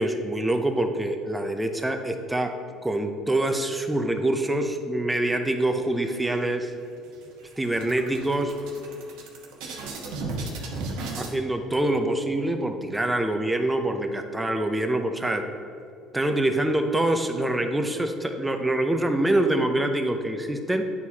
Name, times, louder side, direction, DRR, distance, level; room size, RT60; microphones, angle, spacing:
voice 1, 0.0-2.5 2.8-6.7 7.6-8.5 11.2-15.5 16.1-20.9, right 1 dB, 10° right, 5 dB, 0.5 m, -25 dB
sound 1, 6.0-6.8 7.1-7.3 7.6-11.3, right 2 dB, 85° right, 1.0 m, -35 dB
9.6 x 4.5 x 2.8 m, 2.5 s
cardioid pair, 125°, 0 cm